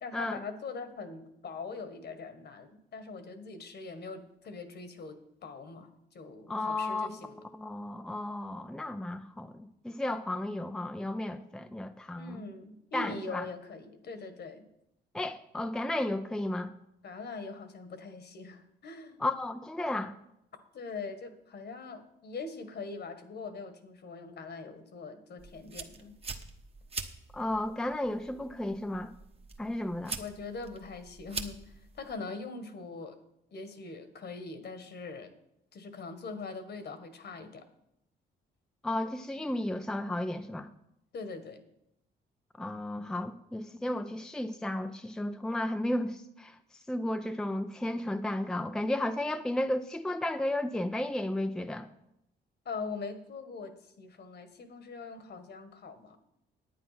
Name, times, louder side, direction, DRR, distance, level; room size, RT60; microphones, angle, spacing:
voice 1, 0.0-7.5 12.1-14.6 17.0-19.2 20.7-26.1 30.2-33.1 33.5-35.3 35.7-37.7 41.1-41.6 52.6-56.2, left 4 dB, 55° left, 1.6 m, -42 dB
voice 2, 6.5-12.4 12.9-13.4 15.1-16.7 19.2-20.1 27.3-29.1 29.6-30.2 38.8-40.7 42.6-46.6 46.9-51.9, left 1 dB, 5° left, 0.5 m, -33 dB
sound 1, 25.4-32.2, right 4 dB, 30° right, 1.2 m, -44 dB
10.5 x 8.8 x 5.9 m
cardioid pair, 90°, 20 cm